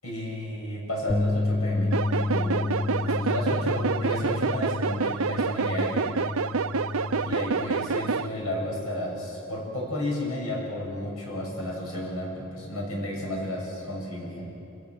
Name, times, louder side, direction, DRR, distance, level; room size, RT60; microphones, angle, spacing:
voice 1, 0.0-6.1 7.2-14.5, left 1 dB, 85° left, -2 dB, 7.6 m, -32 dB
sound 1, 1.1-7.3, left 2 dB, 10° left, 0.4 m, -30 dB
sound 2, 1.9-8.3, right 4 dB, 80° right, 0.7 m, -28 dB
28.0 x 16.5 x 7.9 m, 2.9 s
head